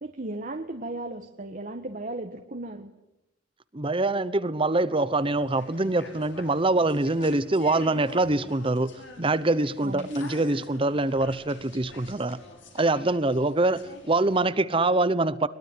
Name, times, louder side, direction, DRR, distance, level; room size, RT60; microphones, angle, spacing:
voice 1, 0.0-2.9 9.8-10.1, right 2 dB, 45° right, 1.5 m, -35 dB
voice 2, 3.7-8.9 9.2-12.4 12.7-15.5, right 2 dB, 30° right, 0.9 m, -24 dB
sound 1, 5.1-14.4, left 2 dB, 75° left, 6.7 m, -46 dB
22.5 x 21.0 x 9.8 m
head